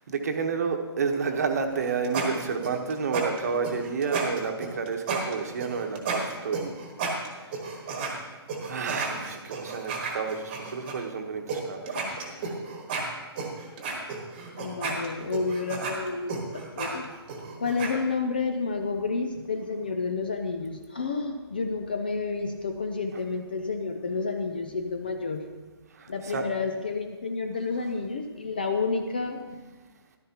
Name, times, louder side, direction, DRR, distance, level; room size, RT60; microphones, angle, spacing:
voice 1, 0.1-6.7 8.2-8.3 8.7-12.5 26.0-26.4, right 5 dB, 40° right, 4 dB, 1.1 m, -30 dB
sound 1, 1.7-8.1 8.5-10.9 11.5-11.6 11.9-17.9, right 5 dB, 20° right, 1.3 m, -33 dB
voice 2, 14.6-17.2 17.6-25.4 26.1-29.6, left 4 dB, 20° left, 5 dB, 0.4 m, -30 dB
13.5 x 12.5 x 2.9 m, 1.2 s
hypercardioid pair, 180°, 14 cm